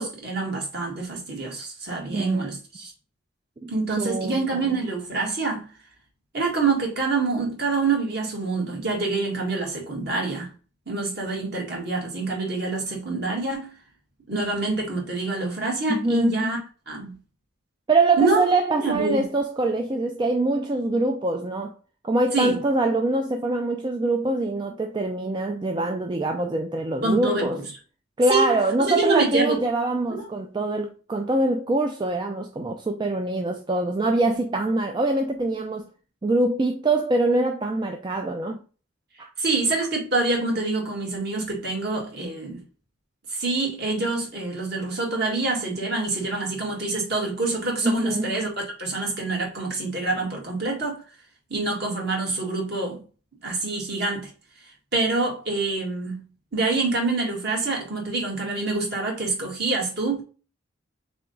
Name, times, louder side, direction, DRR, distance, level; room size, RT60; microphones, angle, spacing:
voice 1, 0.0-2.9 3.7-5.7 6.3-10.5 10.9-13.7 14.3-16.6 16.9-17.2 18.2-18.4 18.8-19.3 22.3-22.6 27.0-27.6 28.3-28.5 28.8-29.6 30.1-30.3 39.4-42.6 43.3-48.5 48.8-51.0 51.5-53.0 53.4-54.3 54.9-56.2 56.5-60.2, right 3 dB, 55° right, 1.7 m, -26 dB
voice 2, 2.1-2.5 3.6-3.7 4.0-4.4 15.9-16.6 17.9-21.7 22.0-27.6 28.2-35.9 36.2-38.6 39.2-39.3 47.8-48.5, right 2 dB, 25° right, 0.3 m, -24 dB
3.8 x 3.5 x 3.8 m
head